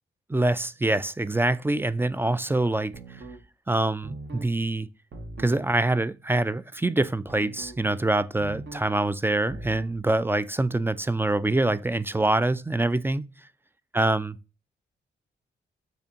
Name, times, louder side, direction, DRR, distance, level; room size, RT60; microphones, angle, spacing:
voice 1, 0.3-3.2 3.7-4.9 5.4-13.3 13.9-14.4, right 2 dB, 10° right, 0.3 m, -25 dB
sound 1, 2.9-3.4 4.0-4.5 5.1-5.6 7.3-7.8 8.4-8.9 9.5-10.0, right 2 dB, 60° right, 0.9 m, -40 dB
6.7 x 2.6 x 2.8 m
supercardioid pair, 50°, 20 cm